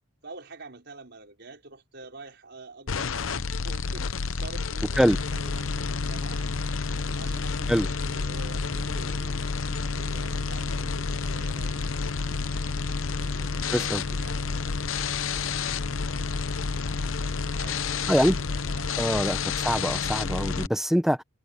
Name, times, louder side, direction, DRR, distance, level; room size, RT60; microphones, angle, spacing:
voice 1, 0.2-5.0 5.3-12.0 12.3-16.9 17.5-19.3, right 3 dB, 55° right, 5.4 m, -48 dB
sound 1, 2.9-20.7, left 4 dB, 75° left, 0.7 m, -29 dB
sound 2, 9.2-20.2, right 1 dB, 30° right, 3.9 m, -56 dB
voice 2, 13.7-14.0 18.1-18.4 19.0-21.2, equal, ahead, 0.7 m, -24 dB
head